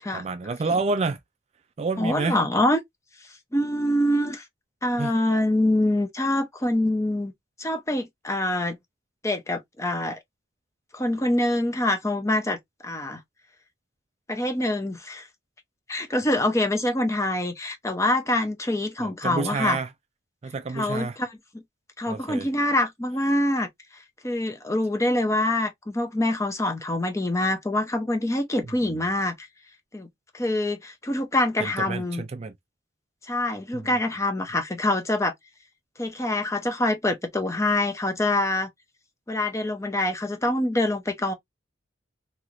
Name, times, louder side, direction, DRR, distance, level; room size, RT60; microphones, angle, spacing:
voice 1, 0.1-1.2 1.8-2.4 5.0-5.1 19.0-19.9 20.4-21.2 22.1-22.5 31.6-32.5 33.7-33.9, right 4 dB, 35° right, 0.3 m, -29 dB
voice 2, 2.0-2.8 3.5-4.4 4.8-7.3 7.6-8.8 9.2-10.2 10.9-12.6 12.8-13.2 14.3-15.3 15.9-19.8 20.7-21.4 22.0-23.7 24.2-29.3 29.9-30.1 30.3-32.2 33.3-35.3 36.0-38.7 39.3-41.3, left 1 dB, 15° left, 0.6 m, -25 dB
3.1 x 2.8 x 2.5 m
head